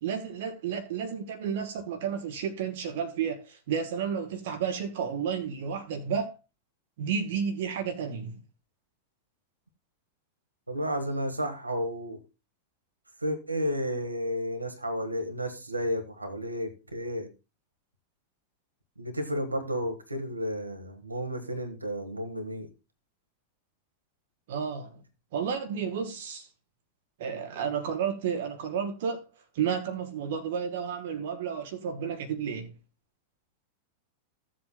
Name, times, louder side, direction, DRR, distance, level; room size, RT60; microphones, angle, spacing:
voice 1, 0.0-6.4 7.0-8.4 24.5-25.0 25.3-26.5 27.2-29.2 29.5-32.7, right 7 dB, 55° right, 1.4 m, -32 dB
voice 2, 10.7-12.2 13.2-17.3 19.0-22.7, equal, 85° right, 1.5 m, -32 dB
15.5 x 7.6 x 2.3 m
figure-of-eight pair, 90°, 0 cm